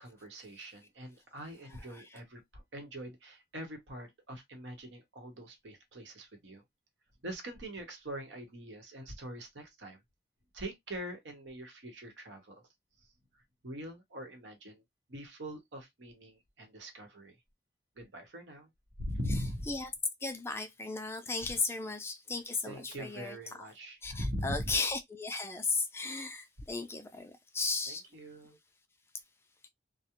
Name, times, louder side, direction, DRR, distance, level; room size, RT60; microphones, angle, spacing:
voice 1, 0.0-6.6 7.2-10.0 10.5-12.7 13.6-14.8 15.1-17.4 18.0-18.7 19.0-19.7 22.6-24.8 27.9-28.6, equal, 90° right, 0.9 m, -42 dB
voice 2, 20.2-23.7 24.0-28.0, left 3 dB, 15° left, 0.3 m, -35 dB
2.3 x 2.1 x 2.8 m
head